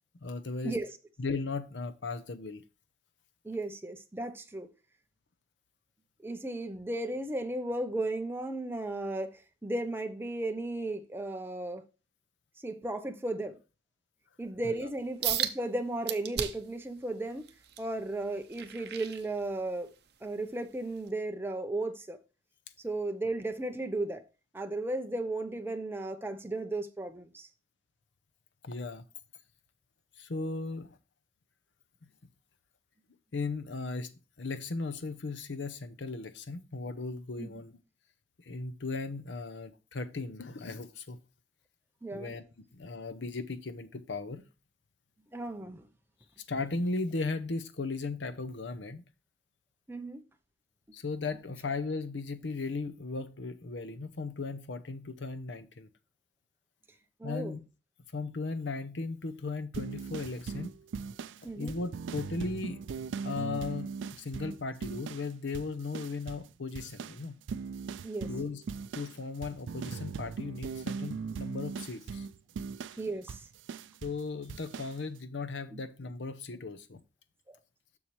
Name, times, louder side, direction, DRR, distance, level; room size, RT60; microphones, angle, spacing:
voice 1, 0.2-0.8 1.2-2.6 14.6-14.8 28.6-29.0 30.2-31.0 33.3-34.1 34.4-37.8 38.5-41.2 42.1-42.4 42.7-44.4 46.5-49.0 50.9-55.9 57.2-57.6 58.1-60.7 61.4-62.8 63.2-67.4 68.3-68.6 68.9-72.3 74.0-77.0, left 3 dB, 75° left, 0.8 m, -37 dB
voice 2, 3.4-4.7 6.2-11.8 12.6-13.6 14.4-17.5 17.8-19.9 20.2-22.2 22.8-24.2 24.5-27.5 37.4-37.6 42.0-42.3 45.3-45.8 49.9-50.2 50.9-51.0 57.2-57.6 61.4-61.7 68.0-68.3 73.0-73.4 75.7-75.8 77.5-77.6, right 2 dB, 15° right, 0.7 m, -35 dB
sound 1, 15.2-15.6 16.1-16.8 17.3-19.8 20.3-20.5 21.1-21.2, right 11 dB, 60° right, 0.7 m, -35 dB
sound 2, 59.7-65.3 65.5-66.5 66.8-74.2 74.5-75.0, right 5 dB, 85° right, 0.3 m, -39 dB
7.1 x 6.5 x 3.2 m
head